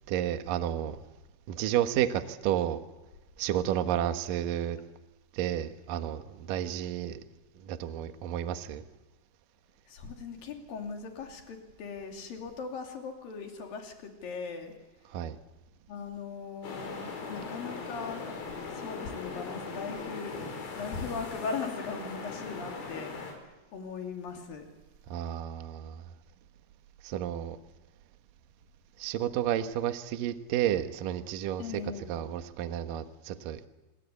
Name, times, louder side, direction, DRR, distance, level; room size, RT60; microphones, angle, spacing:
voice 1, 0.1-1.0 1.5-2.8 3.4-4.8 5.3-7.2 7.6-8.8 15.1-15.4 25.1-26.1 27.0-27.6 29.0-31.8 32.1-33.6, right 11 dB, 70° right, 9 dB, 2.1 m, -31 dB
voice 2, 9.9-14.7 15.9-17.0 17.3-18.2 18.7-20.4 20.8-24.7 31.6-32.1, left 5 dB, 50° left, 3 dB, 4.2 m, -39 dB
sound 1, 16.6-23.3, left 4 dB, 80° left, 7.0 m, -39 dB
27.0 x 23.0 x 8.4 m, 1.2 s
omnidirectional pair, 5.8 m